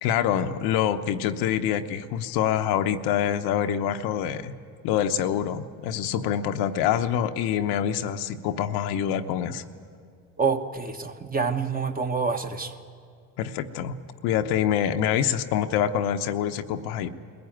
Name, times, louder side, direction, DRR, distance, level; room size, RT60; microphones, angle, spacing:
voice 1, 0.0-4.5 4.8-9.6 13.4-14.0 14.2-17.1, left 9 dB, 85° left, 7 dB, 0.9 m, -26 dB
voice 2, 10.4-12.7, right 5 dB, 25° right, 7 dB, 1.2 m, -27 dB
21.5 x 14.5 x 9.2 m, 2.2 s
supercardioid pair, 90°, 37 cm